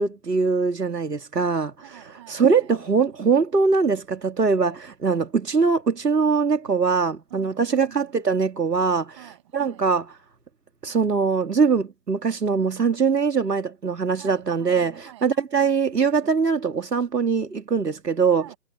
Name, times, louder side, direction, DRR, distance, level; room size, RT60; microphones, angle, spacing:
voice 1, 0.0-1.7 2.3-9.2 9.5-10.0 10.8-18.4, right 5 dB, 80° right, 2.8 m, -22 dB
voice 2, 1.8-2.8 7.3-8.1 9.1-9.9 14.2-15.8 18.3-18.6, right 14 dB, 20° right, 7.2 m, -48 dB
hypercardioid pair, 170°, 48 cm